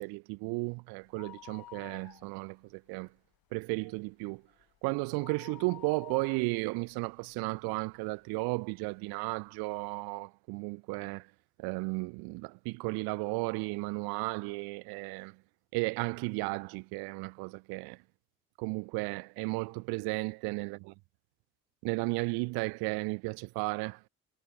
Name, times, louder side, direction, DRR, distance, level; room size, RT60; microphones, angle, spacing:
voice 1, 0.0-3.1 3.5-4.4 4.8-11.3 11.6-15.4 15.7-18.0 18.6-20.9 21.8-24.1, right 29 dB, 60° right, 0.6 m, -34 dB
sound 1, 1.0-2.7 3.0-3.1 3.6-8.0 8.5-8.6 9.4-9.5 9.7-9.8, left 14 dB, 55° left, 1.7 m, -52 dB
figure-of-eight pair, 45°, 43 cm